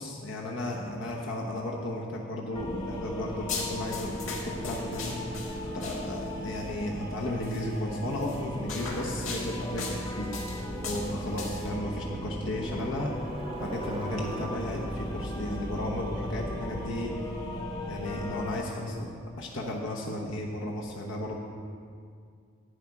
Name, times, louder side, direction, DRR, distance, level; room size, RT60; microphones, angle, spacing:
voice 1, 0.0-5.2 5.7-10.3 10.8-13.1 13.6-17.1 17.9-21.4, left 1 dB, 75° left, -2 dB, 1.0 m, -34 dB
sound 1, 2.6-18.6, equal, 20° left, 0.9 m, -37 dB
sound 2, 3.5-6.4 7.4-7.6 8.2-11.7, left 4 dB, 90° left, 1.8 m, -39 dB
Bicycle, 11.5-18.0, right 2 dB, 25° right, 0.5 m, -45 dB
11.5 x 4.7 x 8.3 m, 2.2 s
head